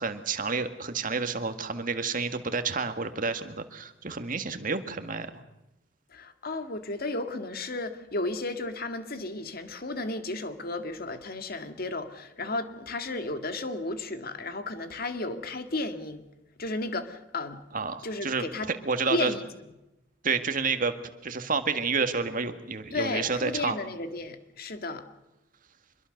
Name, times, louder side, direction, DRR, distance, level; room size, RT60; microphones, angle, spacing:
voice 1, 0.0-5.4 17.7-19.3 20.2-20.9 21.2-23.8, right 4 dB, 45° right, 8 dB, 1.9 m, -30 dB
voice 2, 6.1-16.2 16.6-17.6 18.0-18.7 19.1-19.5 22.9-25.0, left 2 dB, 50° left, 8 dB, 2.1 m, -33 dB
25.5 x 22.0 x 6.6 m, 0.95 s
head